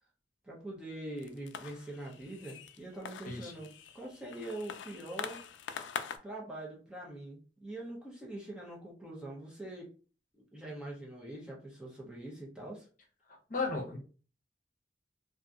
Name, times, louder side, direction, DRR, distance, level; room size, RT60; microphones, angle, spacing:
voice 1, 0.4-5.4 6.2-9.9 10.3-12.9, right 1 dB, 5° right, -4 dB, 0.6 m, -44 dB
sound 1, 1.2-6.2, left 7 dB, 85° left, 0.3 m, -44 dB
voice 2, 13.5-14.0, left 3 dB, 50° left, 0 dB, 0.7 m, -34 dB
2.7 x 2.5 x 2.4 m, 0.38 s
head